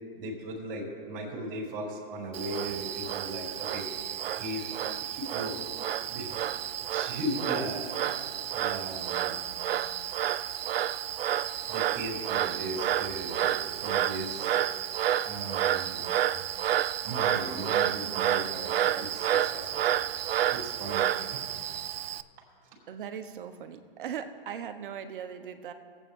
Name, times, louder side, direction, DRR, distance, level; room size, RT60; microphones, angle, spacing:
voice 1, 0.1-3.9 4.3-4.7 5.0-5.6 6.1-6.3 6.9-7.9 8.5-9.4 11.7-14.5 15.2-16.0 17.0-19.1 19.5-19.9 20.5-21.4, right 1 dB, 40° right, -4 dB, 2.7 m, -37 dB
Frog, 2.3-22.2, right 11 dB, 75° right, 0.5 m, -30 dB
voice 2, 22.9-25.7, right 8 dB, 60° right, 8 dB, 1.0 m, -39 dB
20.0 x 8.2 x 3.7 m, 2.3 s
hypercardioid pair, 130°, 30 cm